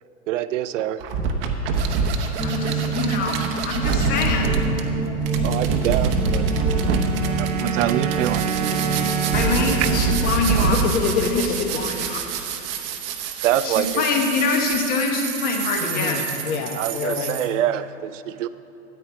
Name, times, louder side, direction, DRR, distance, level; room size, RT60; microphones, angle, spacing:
voice 1, 0.3-1.0 5.4-6.5 7.3-8.5 13.4-14.0 16.7-18.5, right 12 dB, 60° right, 13 dB, 0.6 m, -25 dB
sound 1, 1.0-17.5, right 5 dB, 40° right, 0.9 m, -26 dB
voice 2, 2.4-3.4 3.6-4.5 9.3-10.8 11.3-11.5 11.8-12.2 13.6-16.2, left 4 dB, 20° left, 2 dB, 1.0 m, -24 dB
sound 2, 2.4-10.0, right 3 dB, ahead, 0.5 m, -27 dB
sound 3, 5.9-12.3, right 9 dB, 80° right, 0.9 m, -30 dB
voice 3, 10.7-12.1 15.8-17.4, left 5 dB, 75° left, 3 dB, 1.2 m, -27 dB
13.0 x 9.3 x 4.8 m, 2.9 s
supercardioid pair, 160°, 43 cm